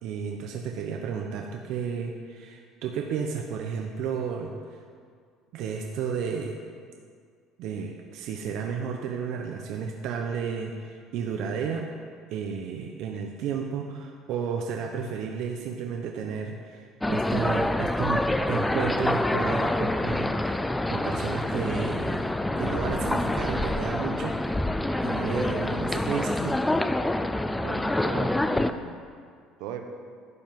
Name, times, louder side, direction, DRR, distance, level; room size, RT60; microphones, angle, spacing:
voice 1, 0.0-4.5 5.5-6.6 7.6-11.9 12.3-20.6 20.9-22.3 22.6-24.4 25.0-26.6, right 6 dB, 60° right, 1 dB, 0.9 m, -32 dB
sound 1, 17.0-28.7, left 1 dB, 5° left, 0.4 m, -26 dB
voice 2, 27.5-28.9 29.6-29.9, right 7 dB, 75° right, 5 dB, 1.2 m, -38 dB
12.5 x 5.4 x 9.1 m, 2.1 s
cardioid pair, 165°, 0 cm